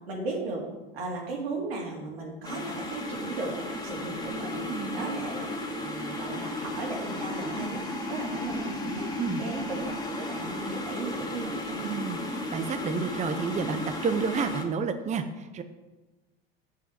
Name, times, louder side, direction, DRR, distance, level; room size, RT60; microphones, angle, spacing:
voice 1, 0.1-0.6 0.9-9.1 9.4-12.0, right 3 dB, 85° right, -1 dB, 2.7 m, -36 dB
sound 1, 2.4-14.6, left 1 dB, 15° left, 1.9 m, -34 dB
voice 2, 4.7-5.1 9.2-9.4 11.8-15.6, right 5 dB, 25° right, 8 dB, 0.7 m, -30 dB
7.5 x 5.6 x 7.5 m, 1.2 s
hypercardioid pair, 90°, 30 cm